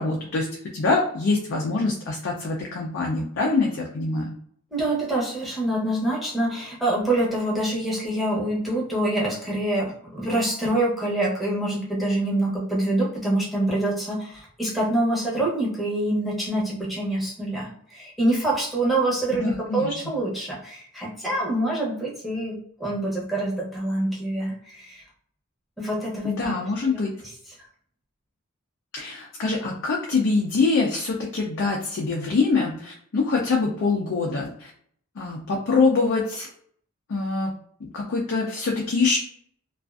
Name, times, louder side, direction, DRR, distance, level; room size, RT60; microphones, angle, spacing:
voice 1, 0.0-4.4 19.3-19.9 26.2-27.1 28.9-34.7 35.2-36.5 37.1-37.5 37.8-39.2, left 3 dB, 55° left, -1 dB, 0.4 m, -24 dB
voice 2, 4.7-22.5 22.8-25.0 25.8-26.5, right 1 dB, ahead, -6 dB, 0.8 m, -25 dB
2.4 x 2.3 x 2.3 m, 0.63 s
head